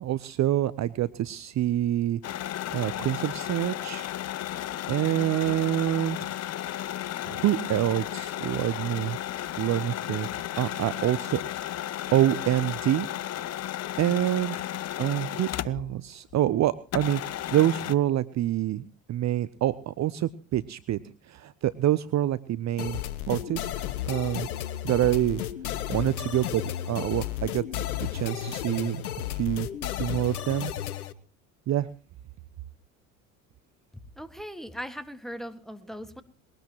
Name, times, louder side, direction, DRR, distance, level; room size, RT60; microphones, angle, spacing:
voice 1, 0.0-2.2 2.7-4.1 4.9-6.3 7.2-9.2 9.6-10.3 10.6-11.4 12.1-13.1 14.0-14.7 15.0-21.0 21.2-23.0 23.3-23.7 24.1-24.5 24.8-25.4 25.9-29.0 29.3-29.7 30.0-30.7 31.7-31.9, right 13 dB, 40° right, 17 dB, 0.7 m, -26 dB
sound 1, 2.2-16.0 16.3-16.4 16.9-17.9, left 12 dB, 35° left, 0.7 m, -34 dB
sound 2, 22.8-31.1, left 12 dB, 85° left, 0.9 m, -33 dB
voice 2, 33.9-36.2, equal, ahead, 10 dB, 1.7 m, -39 dB
21.0 x 18.5 x 3.0 m, 0.37 s
hypercardioid pair, 65°, 43 cm